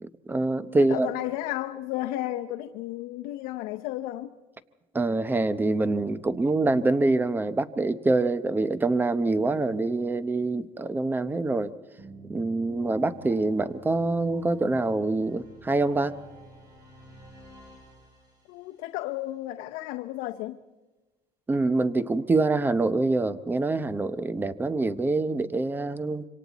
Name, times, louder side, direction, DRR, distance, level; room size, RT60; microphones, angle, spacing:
voice 1, 0.0-1.1 4.9-11.7 12.3-16.1 21.5-26.2, right 2 dB, 15° right, 14 dB, 0.8 m, -25 dB
voice 2, 0.9-4.3 18.5-20.6, left 15 dB, 80° left, 6 dB, 0.8 m, -33 dB
sound 1, 12.0-18.8, right 1 dB, 30° right, 7.5 m, -49 dB
26.5 x 25.0 x 4.1 m, 1.2 s
cardioid pair, 125°, 14 cm